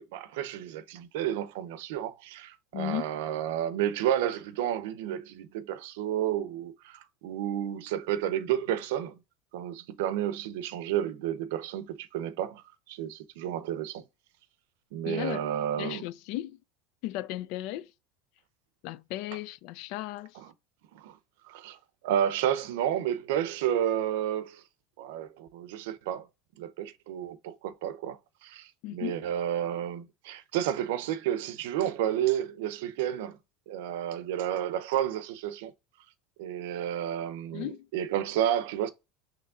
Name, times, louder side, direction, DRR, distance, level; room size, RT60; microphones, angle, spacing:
voice 1, 0.1-9.2 9.5-14.0 14.9-16.0 20.3-20.5 20.9-21.2 21.4-24.6 25.0-26.3 26.6-33.4 33.7-35.7 36.4-38.9, right 11 dB, 80° right, 0.6 m, -31 dB
voice 2, 2.7-3.0 15.1-15.5 15.8-16.6 17.0-17.9 18.8-20.4 28.8-29.3 37.5-37.9, left 15 dB, 60° left, 0.3 m, -35 dB
5.9 x 3.1 x 2.4 m
supercardioid pair, 140°, 0 cm